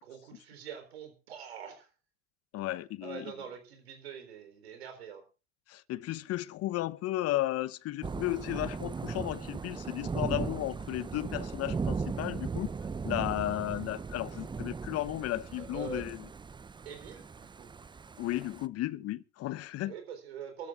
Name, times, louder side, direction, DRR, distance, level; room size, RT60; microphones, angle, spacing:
voice 1, 0.0-1.9 3.0-5.2 15.6-16.1 16.8-17.7 19.9-20.7, right 7 dB, 85° right, 4.1 m, -44 dB
voice 2, 2.5-3.3 5.7-12.7 13.0-16.2 18.2-19.9, left 15 dB, 50° left, 1.0 m, -34 dB
Thunder / Rain, 8.0-18.7, right 5 dB, 15° right, 0.6 m, -38 dB
25.0 x 13.5 x 2.5 m
hypercardioid pair, 75°, 31 cm